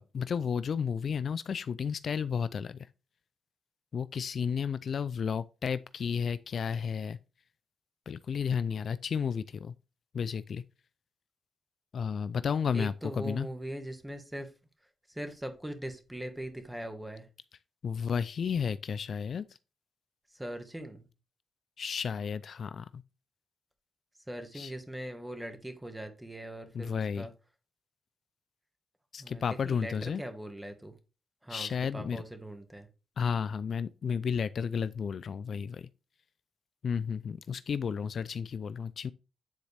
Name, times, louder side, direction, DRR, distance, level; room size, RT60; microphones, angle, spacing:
voice 1, 0.0-2.9 3.9-7.2 8.1-9.7 10.1-10.6 11.9-13.5 17.8-19.5 21.8-23.0 24.5-24.7 26.7-27.3 29.1-30.2 31.5-32.2 33.2-35.9 36.8-39.1, left 6 dB, 60° left, 0.3 m, -32 dB
voice 2, 12.7-14.5 15.1-17.3 20.3-21.0 24.3-27.3 29.2-30.9 31.4-32.9, right 1 dB, 10° right, 1.5 m, -41 dB
9.5 x 4.1 x 3.4 m
cardioid pair, 75°, 0 cm